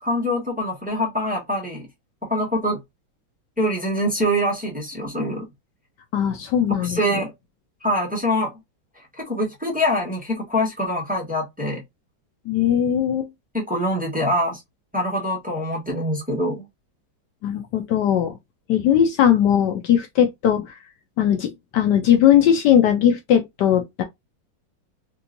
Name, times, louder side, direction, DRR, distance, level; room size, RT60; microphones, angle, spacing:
voice 1, 0.0-1.9 2.2-2.8 3.6-5.5 6.8-7.3 7.8-8.5 9.2-11.8 13.5-14.6 14.9-16.6, equal, 5° right, 1.2 m, -24 dB
voice 2, 6.1-7.0 12.5-13.3 17.4-18.4 18.7-20.8 21.2-24.0, left 9 dB, 75° left, 1.1 m, -19 dB
3.4 x 3.1 x 2.5 m
omnidirectional pair, 2.1 m